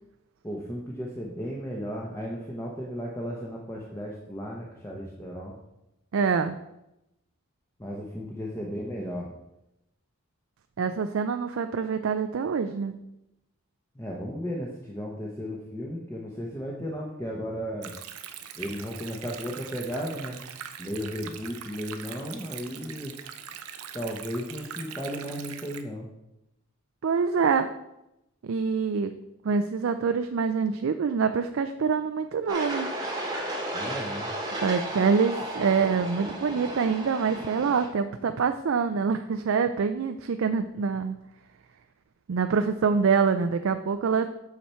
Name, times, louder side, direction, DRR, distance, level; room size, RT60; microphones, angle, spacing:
voice 1, 0.4-5.6 7.8-9.3 13.9-17.9 18.6-20.4 20.8-23.1 23.9-26.1 33.7-34.3, equal, 10° left, -2 dB, 0.8 m, -35 dB
voice 2, 6.1-6.6 10.8-12.9 27.0-27.7 28.4-29.1 29.4-32.9 34.6-41.2 42.3-44.3, right 5 dB, 65° right, 8 dB, 0.4 m, -25 dB
Stream, 17.8-25.8, right 8 dB, 90° right, 0.7 m, -42 dB
sound 1, 32.5-37.9, right 1 dB, 20° right, 1.2 m, -34 dB
8.4 x 5.9 x 4.3 m, 0.89 s
head